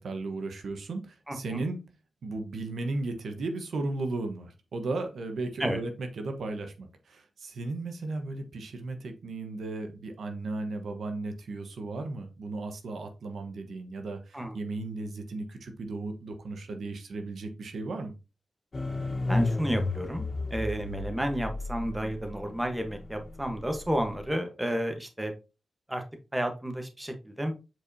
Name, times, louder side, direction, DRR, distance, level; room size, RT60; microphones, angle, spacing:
voice 1, 0.0-1.8 2.2-18.1, right 2 dB, 80° right, 1.1 m, -35 dB
voice 2, 1.3-1.6 5.6-5.8 14.3-14.6 19.3-25.3 25.9-26.0 26.3-27.5, equal, 10° right, 1.2 m, -31 dB
sound 1, 18.7-24.3, left 2 dB, 40° left, 2.8 m, -33 dB
7.8 x 4.6 x 2.7 m
cardioid pair, 85°, 0 cm